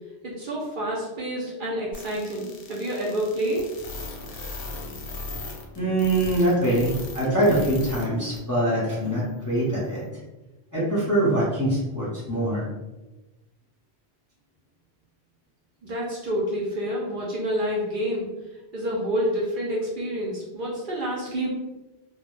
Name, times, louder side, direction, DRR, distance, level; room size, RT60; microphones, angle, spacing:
voice 1, 0.2-3.7 15.8-18.3 18.7-21.5, equal, 60° right, -4 dB, 0.6 m, -28 dB
sound 1, 1.9-8.1 8.3-8.4 8.9-9.0, left 3 dB, 65° left, 0.7 m, -37 dB
voice 2, 5.8-10.0 10.7-12.7, right 1 dB, 20° left, -8 dB, 0.6 m, -23 dB
2.1 x 2.0 x 3.0 m, 1.1 s
omnidirectional pair, 1.1 m